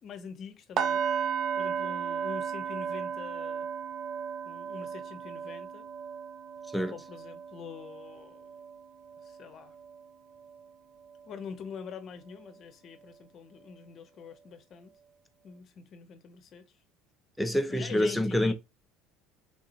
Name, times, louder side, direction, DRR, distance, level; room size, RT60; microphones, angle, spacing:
voice 1, 0.0-1.1 1.5-3.7 4.4-5.9 6.9-8.5 9.2-9.8 11.3-14.9 15.4-16.6 17.7-18.5, left 6 dB, 50° left, 0.8 m, -44 dB
Singing Bowl Male Frequency, 0.8-10.7 11.0-11.3 11.7-11.9, right 7 dB, 50° right, 0.4 m, -35 dB
voice 2, 17.4-18.5, left 1 dB, ahead, 0.6 m, -27 dB
3.6 x 2.7 x 2.5 m
supercardioid pair, 90°, 0 cm